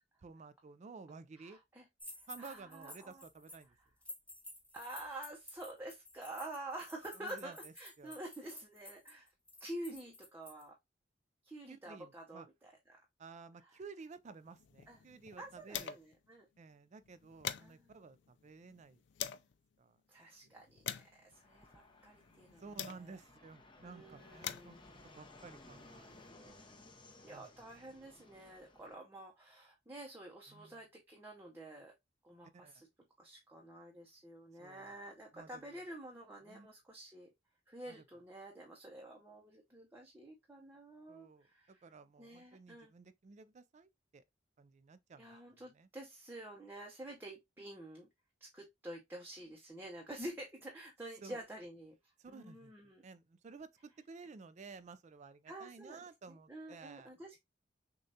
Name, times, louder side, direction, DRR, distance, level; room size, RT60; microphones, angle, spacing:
voice 1, 0.2-1.6 2.3-3.8 7.2-8.2 11.7-12.5 13.2-16.0 16.6-19.0 19.8-20.0 20.4-20.5 22.6-24.8 25.2-26.6 27.3-28.0 30.5-30.8 32.5-32.7 34.6-35.0 35.3-35.7 36.4-36.7 37.9-38.0 41.1-41.5 41.8-44.2 44.6-45.9 51.2-51.4 52.2-57.1, right 4 dB, 40° right, 0.4 m, -54 dB
voice 2, 1.4-1.8 2.4-3.2 4.7-9.3 9.6-10.7 11.4-13.0 14.9-15.0 15.4-16.5 17.6-17.9 20.1-20.9 21.2-22.6 22.9-23.2 23.8-24.8 27.2-31.9 32.2-32.8 33.2-37.3 37.7-41.8 42.2-42.9 45.2-48.1 48.5-52.0 52.3-53.0 55.5-56.0 56.3-57.4, right 1 dB, 10° right, 0.7 m, -49 dB
sound 1, 2.0-3.6 4.0-10.6, left 1 dB, 5° left, 1.3 m, -52 dB
sound 2, 14.4-16.3 16.6-16.7 17.0-19.5 20.2-23.4 24.1-26.3, left 10 dB, 70° left, 0.4 m, -46 dB
Fixed-wing aircraft airplane, 21.3-28.9, left 2 dB, 25° left, 0.8 m, -59 dB
6.3 x 2.3 x 2.7 m
head